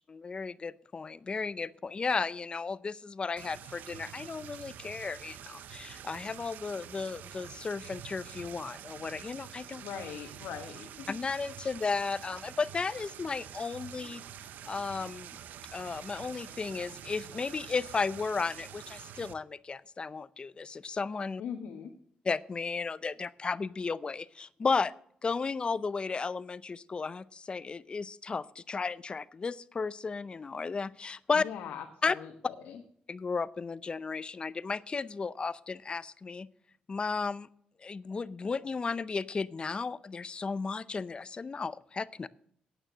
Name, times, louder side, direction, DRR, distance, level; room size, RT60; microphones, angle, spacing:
voice 1, 0.1-9.8 11.1-14.2 14.6-15.3 15.7-21.4 22.2-24.9 25.2-31.4 32.0-32.2 33.1-36.5 36.9-37.5 37.8-42.3, left 4 dB, 35° left, 18 dB, 0.5 m, -34 dB
sound 1, 3.4-19.3, right 10 dB, 80° right, 0.6 m, -47 dB
voice 2, 9.8-11.1 21.4-21.9 31.3-32.8, left 8 dB, 80° left, 3 dB, 1.2 m, -41 dB
9.0 x 8.8 x 6.1 m, 0.66 s
cardioid pair, 80°, 3 cm